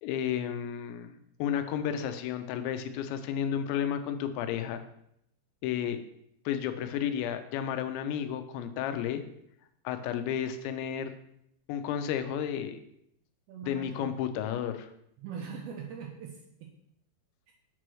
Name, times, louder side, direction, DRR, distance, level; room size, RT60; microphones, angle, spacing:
voice 1, 0.0-1.1 1.4-4.8 5.6-6.0 6.5-9.2 9.9-11.1 11.7-12.8 13.6-14.9, left 9 dB, 90° left, 9 dB, 2.9 m, -32 dB
voice 2, 13.5-14.2 15.2-16.4 17.5-17.6, right 6 dB, 80° right, 1 dB, 2.3 m, -41 dB
7.6 x 3.1 x 6.1 m, 0.76 s
omnidirectional pair, 5.1 m